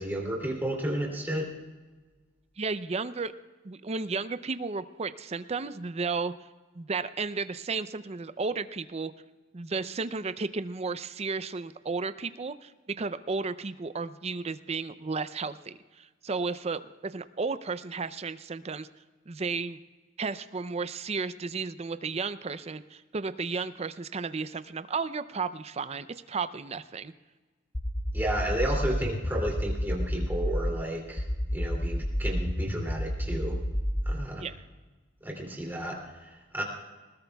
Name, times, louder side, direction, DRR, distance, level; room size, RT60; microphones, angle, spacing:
voice 1, 0.0-1.5 28.1-31.2 31.5-33.6 34.1-34.4 35.2-36.6, right 1 dB, 10° right, -1 dB, 2.7 m, -32 dB
voice 2, 2.6-3.3 3.6-6.3 6.7-9.1 9.5-12.7 13.0-18.9 19.3-19.8 20.2-27.1 34.4-34.6, right 4 dB, 30° right, 13 dB, 0.5 m, -33 dB
sound 1, 27.7-30.8 31.2-34.2, equal, 15° left, 0.6 m, -30 dB
20.5 x 19.5 x 2.3 m, 1.3 s
head